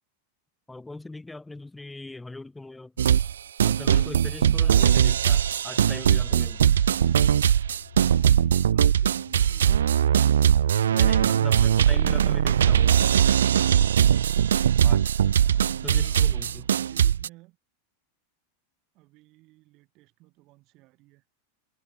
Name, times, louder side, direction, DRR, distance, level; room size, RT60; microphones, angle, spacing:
voice 1, 0.7-2.9 3.6-6.7 10.9-12.9 14.8-15.1 15.6-16.7, left 2 dB, 5° left, 2.0 m, -40 dB
sound 1, 3.0-3.3 3.6-17.3, right 9 dB, 65° right, 0.5 m, -20 dB
sound 2, 6.2-11.6, left 9 dB, 65° left, 3.7 m, -49 dB
voice 2, 8.6-9.7 15.2-15.6 16.0-17.6 18.9-21.2, right 21 dB, 40° right, 3.8 m, -55 dB
figure-of-eight pair, 90°, 0 cm